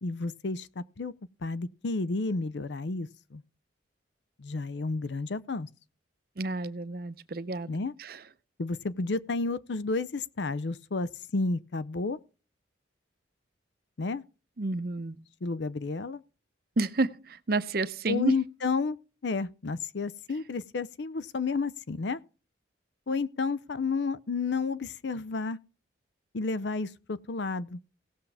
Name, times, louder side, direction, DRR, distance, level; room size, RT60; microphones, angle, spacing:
voice 1, 0.0-1.1 1.4-3.4 4.4-5.7 7.7-7.9 8.6-12.2 14.0-14.2 15.4-16.2 18.1-19.0 19.2-22.2 23.1-25.6 26.3-27.8, left 4 dB, 70° left, 0.6 m, -31 dB
voice 2, 6.4-7.7 8.0-8.2 14.6-15.2 16.8-18.3, right 3 dB, 50° right, 0.6 m, -30 dB
17.5 x 7.1 x 3.4 m
head